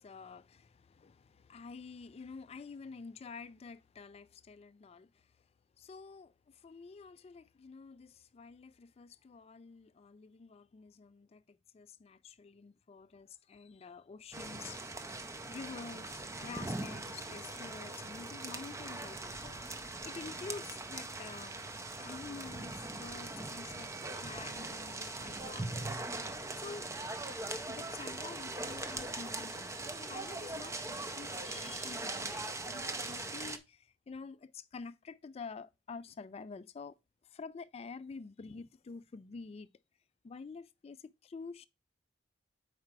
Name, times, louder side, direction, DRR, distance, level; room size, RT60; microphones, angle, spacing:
voice 1, 0.0-5.3 5.8-15.1 15.5-21.6 22.0-26.9 27.7-37.0 37.2-39.7 40.2-41.7, left 4 dB, 35° left, 0.3 m, -49 dB
sound 1, 14.3-33.6, right 2 dB, 15° right, 0.5 m, -41 dB
4.9 x 4.3 x 5.8 m
head